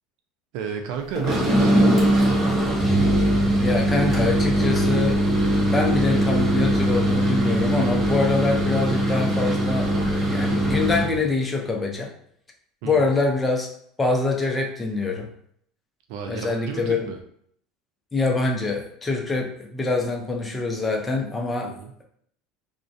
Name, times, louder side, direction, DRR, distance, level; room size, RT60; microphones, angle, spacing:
voice 1, 0.5-2.4 12.8-13.0 16.1-17.2 21.6-21.9, right 6 dB, 70° right, 5 dB, 0.4 m, -33 dB
sound 1, 1.1-11.2, right 1 dB, 25° right, 0.8 m, -21 dB
voice 2, 3.6-5.2 5.6-12.1 12.8-13.7 14.0-15.3 16.3-17.1 18.1-21.7, left 3 dB, 20° left, 1 dB, 0.5 m, -25 dB
2.4 x 2.1 x 2.6 m, 0.67 s
supercardioid pair, 105°, 0 cm